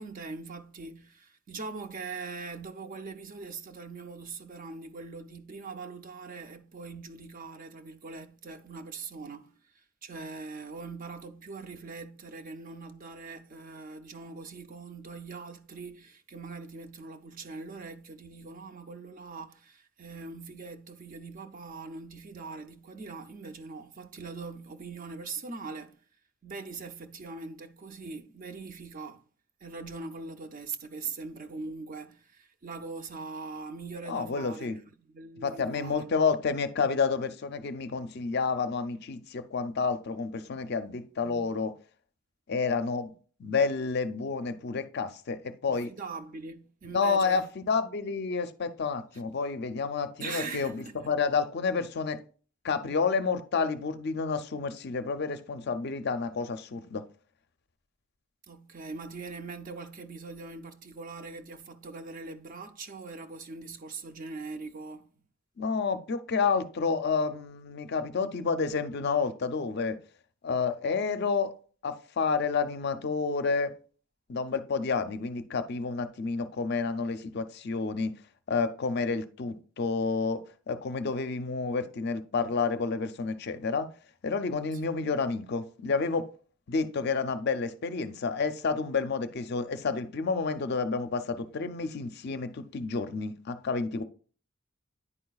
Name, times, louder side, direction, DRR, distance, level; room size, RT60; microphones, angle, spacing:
voice 1, 0.0-26.0 26.4-29.2 29.6-36.1 41.2-41.5 45.7-47.5 50.2-51.1 58.5-65.1 85.0-85.1, right 4 dB, 40° right, 0.5 m, -42 dB
voice 2, 34.1-34.8 35.4-41.7 42.5-43.1 43.4-45.9 46.9-52.2 52.6-57.0 65.6-70.0 70.4-71.5 71.8-73.7 74.3-78.1 78.5-83.9 84.2-86.3 86.7-94.0, left 4 dB, 50° left, 0.5 m, -30 dB
9.9 x 4.7 x 2.3 m
head